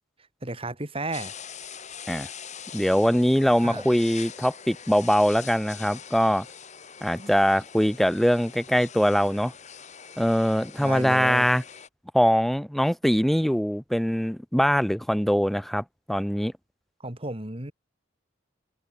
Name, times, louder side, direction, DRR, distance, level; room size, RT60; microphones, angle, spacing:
voice 1, 0.4-1.3 3.6-3.9 7.2-7.3 10.8-11.5 17.0-17.7, right 2 dB, 30° right, 2.9 m, -33 dB
sound 1, 1.1-11.9, left 7 dB, 35° left, 2.4 m, -43 dB
voice 2, 2.7-6.5 7.0-9.5 10.2-11.6 12.1-16.5, equal, ahead, 0.3 m, -22 dB
open air
head